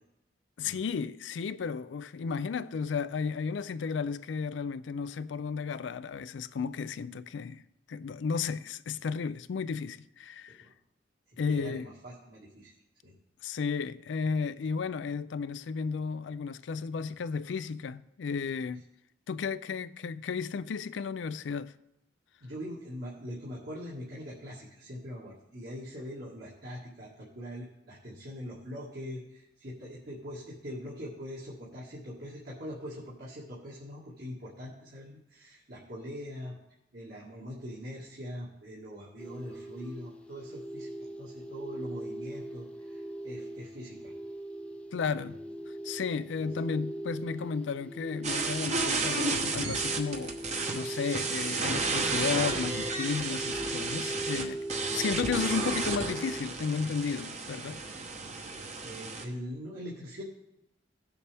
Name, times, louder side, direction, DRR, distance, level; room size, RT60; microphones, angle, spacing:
voice 1, 0.6-7.6 7.9-10.7 11.4-11.9 13.4-18.8 19.3-21.7 44.9-45.4 45.8-50.4 50.7-54.6 54.9-57.8, left 5 dB, 80° left, 0.4 m, -33 dB
voice 2, 11.4-12.7 13.0-13.1 22.4-36.6 36.9-40.9 41.2-44.1 45.2-45.3 46.4-46.5 58.8-60.2, equal, 60° right, 1.9 m, -42 dB
sound 1, 39.2-56.4, right 1 dB, 5° left, 0.5 m, -40 dB
sound 2, 48.2-59.2, right 3 dB, 40° right, 1.0 m, -32 dB
16.5 x 7.0 x 3.4 m
head